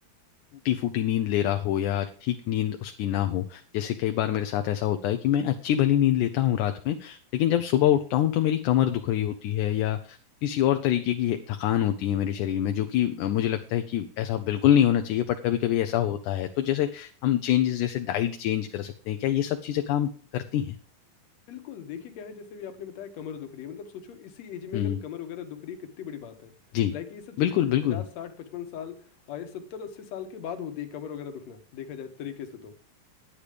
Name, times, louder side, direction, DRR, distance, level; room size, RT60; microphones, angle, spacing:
voice 1, 0.7-20.8 24.7-25.0 26.7-26.9 27.4-28.0, left 11 dB, 75° left, 7 dB, 2.0 m, -25 dB
voice 2, 21.5-26.5 26.9-29.0 29.3-32.7, left 8 dB, 60° left, 6 dB, 2.3 m, -39 dB
10.5 x 9.8 x 5.1 m, 0.39 s
omnidirectional pair, 4.0 m